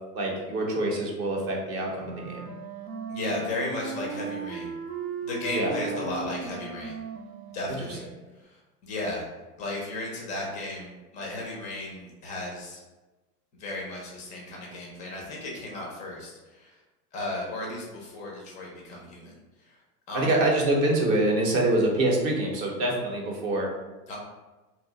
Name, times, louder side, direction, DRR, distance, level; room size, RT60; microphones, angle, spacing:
voice 1, 0.1-2.5 5.5-5.7 20.1-23.7, right 1 dB, 30° right, 0 dB, 0.6 m, -25 dB
Wind instrument woodwind instrument, 2.0-8.2, right 6 dB, 85° right, 0.7 m, -37 dB
voice 2, 3.1-4.7 5.2-7.0 7.5-8.1 8.4-9.3 9.6-12.8 13.6-16.8 17.1-19.3 19.6-19.8 20.1-20.4 24.1-24.2, left 2 dB, 15° left, -2 dB, 0.4 m, -35 dB
2.8 x 2.2 x 3.8 m, 1.1 s
hypercardioid pair, 130°, 48 cm